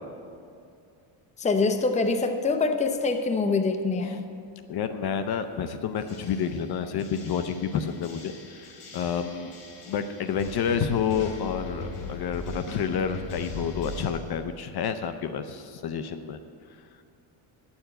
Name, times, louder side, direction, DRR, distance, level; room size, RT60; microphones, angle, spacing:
voice 1, 1.4-4.3, left 3 dB, 15° left, 6 dB, 0.6 m, -25 dB
voice 2, 4.7-9.5 9.8-16.4, left 7 dB, 50° left, 9 dB, 0.7 m, -29 dB
sound 1, 6.0-14.1, left 2 dB, 90° left, 3.2 m, -40 dB
10.0 x 7.2 x 7.7 m, 2.4 s
cardioid pair, 120°, 49 cm